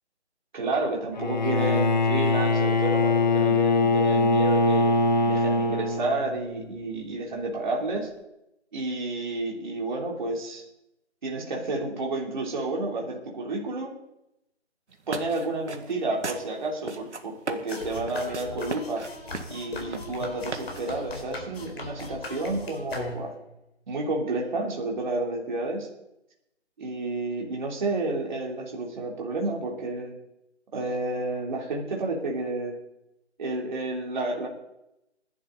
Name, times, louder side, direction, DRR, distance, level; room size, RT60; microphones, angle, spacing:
voice 1, 0.5-4.9 5.3-8.1 8.7-10.6 11.2-13.9 15.1-19.1 19.5-23.3 23.9-25.9 26.8-30.2 30.7-32.8 33.4-34.5, right 2 dB, 40° right, -2 dB, 3.2 m, -30 dB
Bowed string instrument, 1.1-6.4, left 3 dB, 40° left, 0.7 m, -22 dB
sound 1, 14.9-21.1, right 4 dB, 75° right, 2.0 m, -38 dB
mouth music, 17.7-23.5, left 2 dB, 55° left, 4.0 m, -38 dB
20.0 x 11.0 x 4.0 m, 0.85 s
figure-of-eight pair, 165°, 35 cm